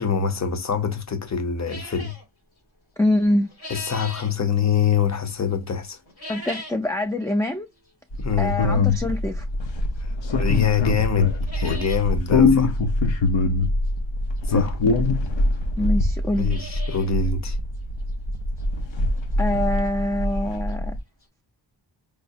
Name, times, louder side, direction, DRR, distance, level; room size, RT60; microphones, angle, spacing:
voice 1, 0.0-2.1 3.7-6.0 8.2-8.6 10.0-10.1 10.4-12.7 14.5-14.8 16.4-17.6, left 7 dB, 35° left, 0.7 m, -24 dB
sound 1, 1.7-2.2 3.2-4.3 6.0-6.9 7.3-7.4 8.2-8.3 10.0-10.1 10.5-10.6 10.9-11.0 11.2-12.0 12.4-12.5 12.7-12.8 14.4-14.5 15.2-15.3 15.5-15.6 16.1-17.1 17.5-17.6 18.1-18.2 18.6-18.7 20.4-20.5 20.7-20.8 21.2-21.3, left 1 dB, 90° left, 2.5 m, -39 dB
voice 2, 3.0-3.5 6.3-7.7 8.4-9.5 15.8-16.5 19.4-20.9, left 1 dB, 5° left, 0.4 m, -24 dB
sound 2, 8.1-21.0, left 2 dB, 70° left, 0.7 m, -23 dB
4.8 x 2.0 x 2.6 m
wide cardioid pair, 85°, 47 cm